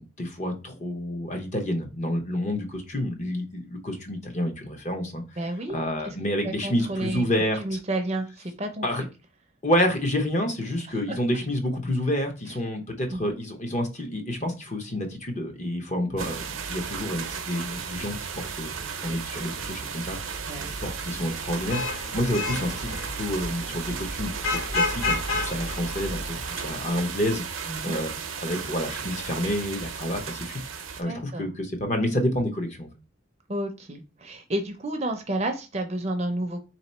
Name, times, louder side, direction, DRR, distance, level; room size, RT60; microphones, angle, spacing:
voice 1, 0.0-5.2 5.7-7.8 8.8-9.0 9.6-28.1 28.4-30.6 31.0-32.9, left 1 dB, 35° left, 0.8 m, -29 dB
voice 2, 5.4-5.8 6.0-6.2 6.4-7.2 7.6-8.3 8.6-8.9 11.1-11.2 13.1-13.4 20.5-20.7 27.7-28.0 31.0-31.5 33.5-36.6, right 1 dB, 30° right, 0.5 m, -30 dB
sound 1, 16.2-31.0, right 6 dB, 90° right, 0.7 m, -35 dB
Vehicle horn car horn honking / Traffic noise roadway noise, 21.5-26.7, left 2 dB, 75° left, 0.8 m, -31 dB
3.7 x 2.9 x 4.2 m
head